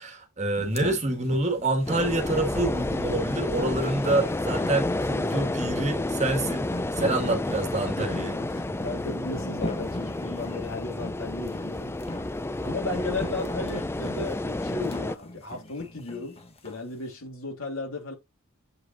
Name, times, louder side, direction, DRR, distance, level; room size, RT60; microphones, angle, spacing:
voice 1, 0.0-6.7 7.0-8.3, right 2 dB, 35° right, 1.6 m, -27 dB
sound 1, 0.6-16.8, left 1 dB, 30° left, 1.4 m, -40 dB
sound 2, 1.9-15.2, left 2 dB, 10° left, 0.4 m, -30 dB
voice 2, 8.0-11.9 12.6-16.4 16.6-18.1, left 3 dB, 70° left, 3.0 m, -35 dB
8.1 x 5.0 x 2.8 m
head